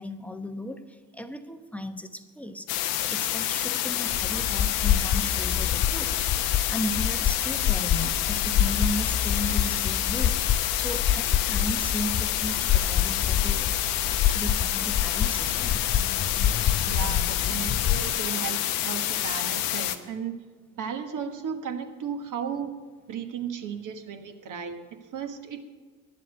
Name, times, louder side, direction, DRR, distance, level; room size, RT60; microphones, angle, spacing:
voice 1, 0.0-13.7 14.1-15.9, equal, 5° left, 8 dB, 0.9 m, -36 dB
sound 1, 2.7-20.0, left 12 dB, 75° left, 0.9 m, -28 dB
sound 2, 4.1-18.1, left 10 dB, 25° left, 0.4 m, -27 dB
voice 2, 16.9-20.3 20.8-22.7 23.1-24.9 25.1-25.6, right 7 dB, 45° right, 6 dB, 1.5 m, -35 dB
10.5 x 7.5 x 8.1 m, 1.4 s
hypercardioid pair, 65°, 43 cm